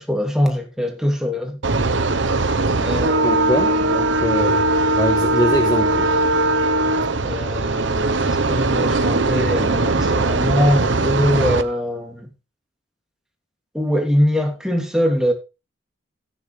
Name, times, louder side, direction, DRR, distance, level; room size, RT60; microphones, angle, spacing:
voice 1, 0.0-1.6 2.7-3.7 7.2-12.3 13.7-15.3, equal, 5° right, 2.9 m, -22 dB
sound 1, 1.6-11.6, right 2 dB, 65° right, 1.1 m, -19 dB
voice 2, 3.2-4.6 4.9-6.1, equal, 20° left, 1.4 m, -23 dB
14.0 x 10.0 x 3.4 m
head